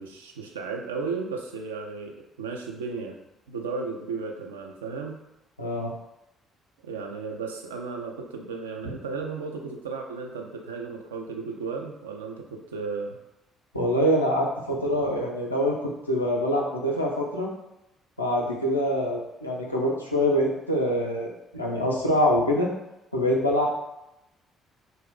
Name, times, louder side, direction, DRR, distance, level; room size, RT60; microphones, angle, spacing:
voice 1, 0.0-3.2 3.5-5.2 6.8-13.2, right 4 dB, 75° right, 2 dB, 0.3 m, -34 dB
voice 2, 5.6-5.9 13.7-17.5 18.2-22.7 23.1-23.7, equal, 85° left, -2 dB, 0.4 m, -25 dB
2.4 x 2.0 x 3.6 m, 0.90 s
figure-of-eight pair, 45°, 0 cm